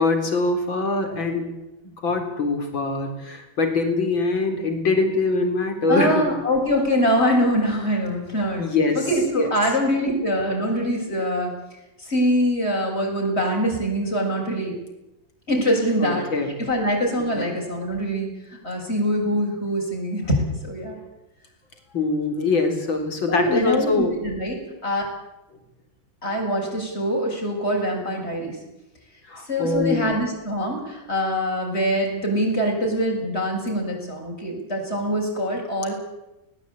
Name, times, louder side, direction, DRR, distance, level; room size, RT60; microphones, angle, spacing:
voice 1, 0.0-1.5 1.8-6.3 8.6-9.0 9.3-9.5 16.0-16.5 17.3-17.5 21.9-24.2 29.3-30.1, left 3 dB, 75° left, 5 dB, 4.5 m, -23 dB
voice 2, 5.9-8.7 9.0-11.5 12.0-14.7 15.5-16.3 16.6-18.3 18.6-20.3 20.6-21.0 23.3-25.0 26.2-28.6 29.4-35.9, equal, 30° left, 0 dB, 7.6 m, -24 dB
21.0 x 19.5 x 8.8 m, 0.96 s
omnidirectional pair, 2.1 m